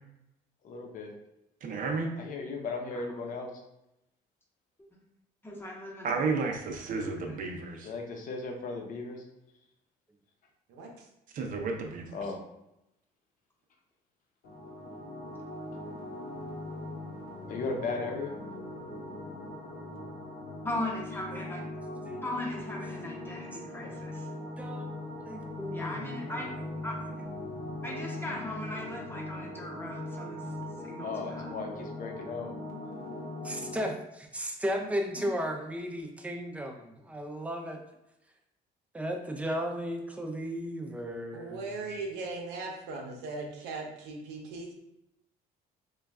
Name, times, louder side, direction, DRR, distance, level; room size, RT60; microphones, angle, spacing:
voice 1, 0.6-1.1 2.2-3.5 7.8-9.2 12.1-12.4 17.5-18.3 23.8-23.9 31.0-32.5, left 3 dB, 50° left, 1 dB, 0.8 m, -36 dB
voice 2, 1.6-2.1 6.0-7.9 11.3-12.2, right 4 dB, 55° right, 3 dB, 0.6 m, -32 dB
voice 3, 5.4-6.3 7.3-7.4 20.6-21.6 22.2-24.3 25.7-26.5 26.8-26.9 27.8-30.4 30.8-31.6 34.8-34.9 35.2-35.3, left 1 dB, 10° left, -2 dB, 0.9 m, -38 dB
voice 4, 10.7-11.0 41.3-44.7, right 3 dB, 90° right, 1 dB, 0.7 m, -39 dB
sound 1, 14.4-33.9, left 1 dB, 75° left, 0.9 m, -40 dB
voice 5, 24.6-24.9 25.2-26.7 33.4-37.8 38.9-41.9, equal, 10° right, 3 dB, 0.5 m, -35 dB
3.2 x 2.3 x 3.4 m, 0.87 s
cardioid pair, 110°, 17 cm